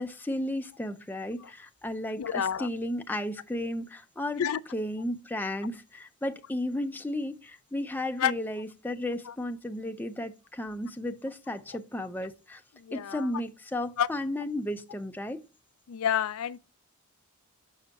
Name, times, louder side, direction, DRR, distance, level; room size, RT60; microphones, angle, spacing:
voice 1, 0.0-4.4 4.7-12.6 12.9-15.4, left 1 dB, 10° left, 0.4 m, -34 dB
voice 2, 2.2-2.7 4.4-4.6 8.2-8.3 12.9-13.3 14.0-14.1 15.9-16.6, left 9 dB, 75° left, 0.4 m, -28 dB
6.7 x 6.2 x 3.4 m
head